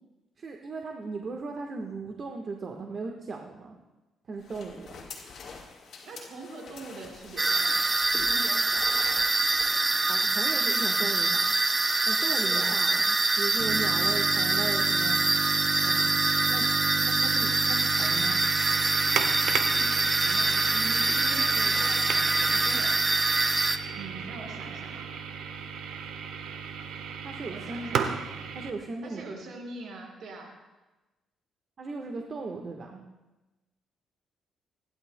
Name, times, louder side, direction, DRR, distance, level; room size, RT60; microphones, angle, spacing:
voice 1, 0.4-3.7 4.3-4.9 9.7-11.5 12.0-15.2 15.8-16.7 17.0-18.4 27.2-28.2 28.5-29.4 31.8-33.0, right 3 dB, 45° right, 2 dB, 1.3 m, -37 dB
sound 1, 4.4-9.7, left 4 dB, 60° left, 4.1 m, -45 dB
voice 2, 6.0-7.8 8.2-9.0 12.4-12.8 19.5-22.9 23.9-25.1 27.5-28.0 29.0-30.5, right 3 dB, 65° right, 0 dB, 4.8 m, -43 dB
sound 2, 7.4-23.8, right 2 dB, 25° right, 0.7 m, -25 dB
sound 3, 13.6-28.7, right 7 dB, 85° right, 1.1 m, -34 dB
28.5 x 11.5 x 2.2 m, 1.1 s
cardioid pair, 90°, 0 cm